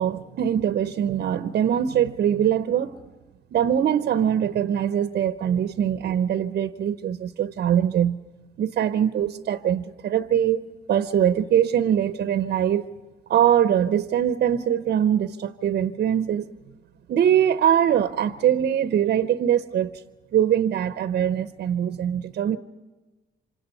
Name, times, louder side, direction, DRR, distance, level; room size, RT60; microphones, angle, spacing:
voice 1, 0.0-3.0 3.5-8.2 8.6-10.6 10.9-12.9 13.3-16.5 17.1-20.0 20.3-22.6, right 9 dB, 55° right, 0.7 m, -22 dB
27.5 x 26.0 x 5.6 m
cardioid pair, 100°, 19 cm